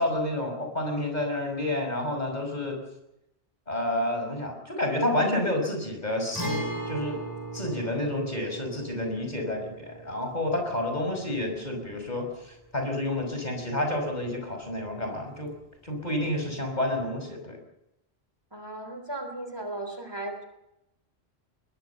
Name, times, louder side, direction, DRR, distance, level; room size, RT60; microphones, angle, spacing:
voice 1, 0.0-2.8 3.7-7.2 7.5-15.5 15.8-17.6, left 1 dB, 40° left, 3 dB, 5.6 m, -29 dB
Guitar, 6.3-14.0 14.2-14.3 16.3-16.5, right 1 dB, 15° left, 3.5 m, -39 dB
voice 2, 18.5-20.5, right 2 dB, 20° right, 5 dB, 3.6 m, -36 dB
21.5 x 21.0 x 7.0 m, 0.85 s
omnidirectional pair, 1.1 m